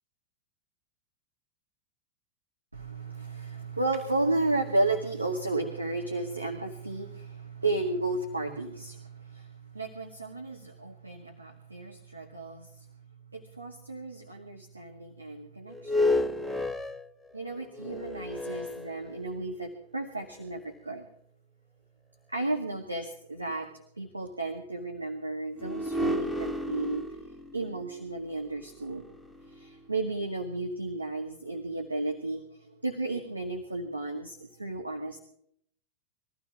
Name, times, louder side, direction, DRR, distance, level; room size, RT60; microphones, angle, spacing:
voice 1, 2.7-12.9 13.3-16.3 17.3-21.1 22.3-27.2 27.5-29.1 29.5-35.2, right 2 dB, 85° right, 2 dB, 1.9 m, -33 dB
sound 1, 15.7-19.5 20.2-20.3 25.6-29.8, left 2 dB, ahead, 0.9 m, -32 dB
22.5 x 14.5 x 3.6 m, 0.64 s
figure-of-eight pair, 90°, 0 cm